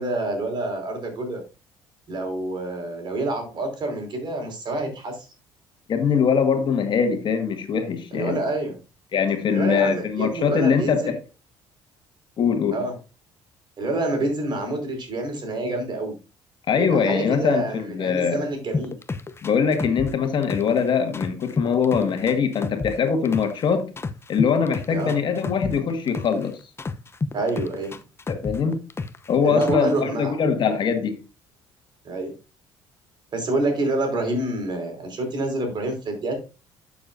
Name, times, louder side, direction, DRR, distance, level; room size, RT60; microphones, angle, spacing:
voice 1, 0.0-1.4 2.1-5.3 8.1-8.8 9.5-11.1 12.7-12.9 13.8-16.1 16.8-18.9 24.9-25.2 27.3-28.0 29.4-30.4 32.0-32.3 33.3-36.3, right 2 dB, 50° right, 4.9 m, -27 dB
voice 2, 5.9-8.4 9.1-11.2 12.4-12.8 16.7-18.4 19.4-23.9 24.3-26.6 28.3-28.8 29.3-31.2, left 6 dB, 50° left, 1.8 m, -22 dB
sound 1, 18.7-20.8 21.1-23.6 24.0-26.4 26.8-29.3 29.6-30.0, left 3 dB, 25° left, 0.8 m, -30 dB
12.0 x 7.0 x 2.7 m
supercardioid pair, 75°, 10 cm